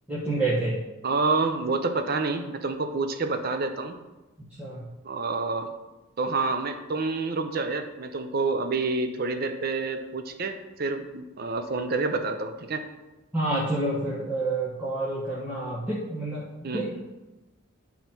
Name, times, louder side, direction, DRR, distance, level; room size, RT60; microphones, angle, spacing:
voice 1, 0.1-0.8 4.6-4.8 13.3-16.5 16.7-16.9, right 2 dB, 5° right, -9 dB, 1.2 m, -28 dB
voice 2, 1.0-4.0 5.0-5.7 6.2-12.8 16.6-16.9, right 3 dB, 45° right, 8 dB, 0.6 m, -28 dB
10.0 x 4.0 x 4.4 m, 1.1 s
head